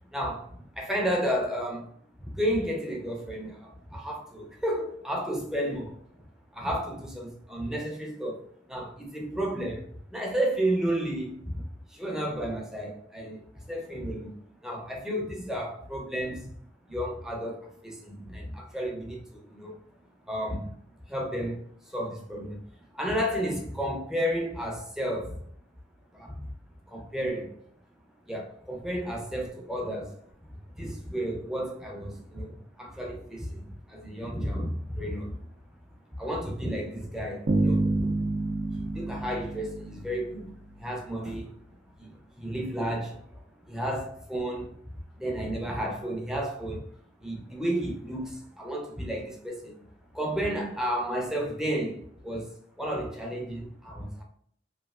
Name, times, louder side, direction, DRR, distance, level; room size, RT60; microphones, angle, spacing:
voice 1, 0.1-1.9 2.2-6.3 6.5-14.3 14.6-16.6 16.9-19.8 20.3-20.8 21.1-22.6 22.9-25.4 26.1-26.5 26.9-27.6 28.3-30.2 30.5-35.5 36.2-41.6 42.0-44.8 45.2-46.9 47.2-49.9 50.1-54.2, equal, 5° right, 0.4 m, -32 dB
Bass guitar, 37.5-40.6, right 2 dB, 75° right, 0.5 m, -28 dB
3.0 x 2.4 x 2.3 m
head